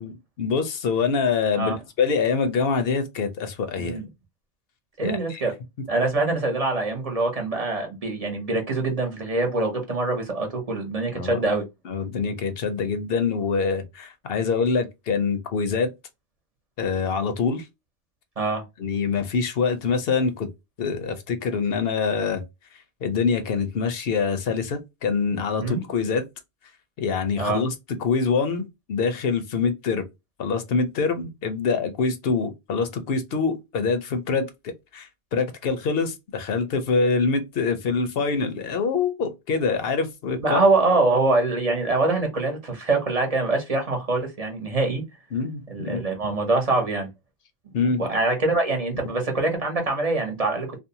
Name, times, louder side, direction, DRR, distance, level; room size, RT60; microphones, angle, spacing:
voice 1, 0.0-4.0 5.0-5.4 11.1-11.4 11.9-15.9 16.8-17.7 18.8-20.5 20.8-22.4 23.0-26.2 27.0-27.7 28.0-30.0 30.4-34.5 34.9-40.6 45.3-46.0 47.7-48.1, left 5 dB, 70° left, 0.8 m, -25 dB
voice 2, 5.0-5.5 5.9-11.7 18.4-18.6 25.6-25.9 27.4-27.6 40.4-45.0 45.7-47.1 47.8-50.7, right 3 dB, 40° right, 0.8 m, -24 dB
2.6 x 2.0 x 2.7 m
omnidirectional pair, 1.0 m